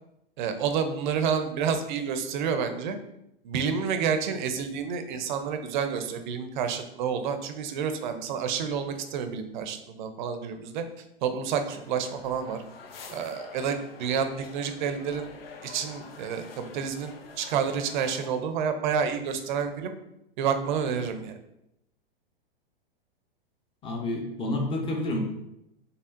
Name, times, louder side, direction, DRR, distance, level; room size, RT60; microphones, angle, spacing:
voice 1, 0.4-3.0 3.4-10.8 11.2-12.6 13.1-15.3 15.6-19.9 20.4-21.4, right 6 dB, 55° right, 8 dB, 0.6 m, -29 dB
sound 1, 11.7-18.3, left 5 dB, 80° left, 0.6 m, -47 dB
voice 2, 23.8-25.2, left 1 dB, 20° left, 1 dB, 0.7 m, -29 dB
4.3 x 3.3 x 2.5 m, 0.84 s
hypercardioid pair, 110°, 29 cm